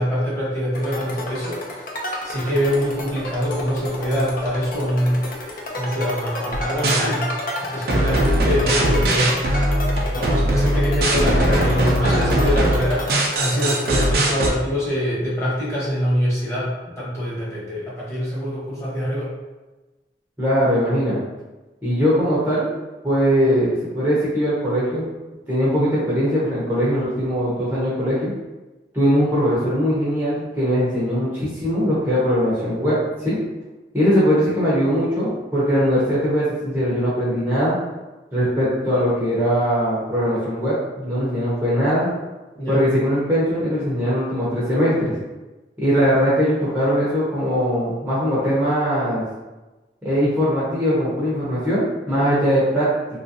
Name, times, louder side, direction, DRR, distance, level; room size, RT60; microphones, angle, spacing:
voice 1, 0.0-1.8 2.2-5.2 5.7-7.3 7.6-16.7 17.0-19.3 42.5-42.8, equal, 15° left, -8 dB, 1.0 m, -24 dB
sound 1, 0.7-14.1, left 1 dB, 50° left, 0.5 m, -31 dB
sound 2, 6.5-7.0 7.9-14.5, right 1 dB, 55° right, 0.5 m, -20 dB
voice 2, 20.4-21.2 21.8-22.7 23.0-25.1 25.5-28.3 28.9-33.4 33.9-37.8 38.3-42.1 42.7-45.2 45.8-49.2 50.0-52.9, equal, 10° right, -10 dB, 0.7 m, -20 dB
2.9 x 2.5 x 2.7 m, 1.1 s
head